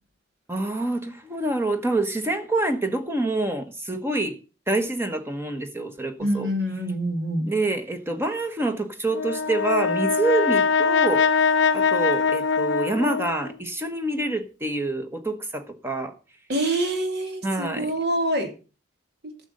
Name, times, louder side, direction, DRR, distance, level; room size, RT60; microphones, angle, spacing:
voice 1, 0.5-4.4 4.7-6.5 7.5-16.1 17.4-17.9, right 2 dB, 15° right, 1.1 m, -27 dB
voice 2, 6.2-7.5 16.5-18.5, right 1 dB, 60° right, 2.6 m, -26 dB
Brass instrument, 9.1-13.6, left 5 dB, 75° left, 0.8 m, -22 dB
11.0 x 6.5 x 6.6 m
head